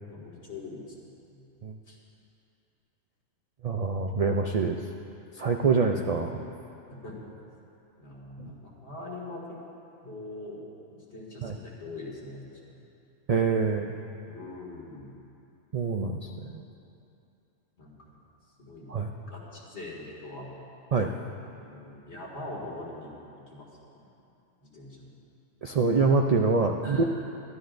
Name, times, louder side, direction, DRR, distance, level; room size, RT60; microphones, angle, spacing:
voice 1, 0.1-0.8 1.3-1.5 1.9-2.0 6.9-7.3 8.0-9.6 10.0-10.6 10.9-12.8 14.3-15.1 17.8-18.2 18.6-18.9 19.3-20.5 21.6-23.1 23.5-24.1 24.6-25.1 26.8-27.0, left 2 dB, 55° left, -4 dB, 2.6 m, -42 dB
voice 2, 3.6-4.8 5.4-6.4 8.4-8.5 11.4-11.6 13.3-14.0 15.7-16.2 18.9-19.1 20.9-21.1 25.6-27.0, right 4 dB, 80° right, 2 dB, 0.3 m, -25 dB
23.0 x 13.0 x 2.6 m, 2.7 s
omnidirectional pair, 1.4 m